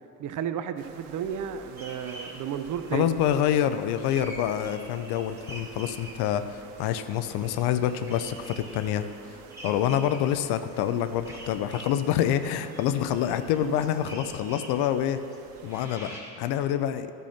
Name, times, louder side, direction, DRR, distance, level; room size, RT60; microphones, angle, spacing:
voice 1, 0.2-3.1, right 8 dB, 40° right, 10 dB, 0.7 m, -32 dB
sound 1, 0.8-15.9, right 5 dB, 70° right, 1.1 m, -49 dB
sound 2, 1.8-6.5 6.8-16.3, right 1 dB, 5° right, 2.8 m, -46 dB
voice 2, 2.9-15.2 15.6-17.1, left 10 dB, 55° left, 11 dB, 0.7 m, -27 dB
12.5 x 6.2 x 5.9 m, 2.6 s
hypercardioid pair, 65°, 46 cm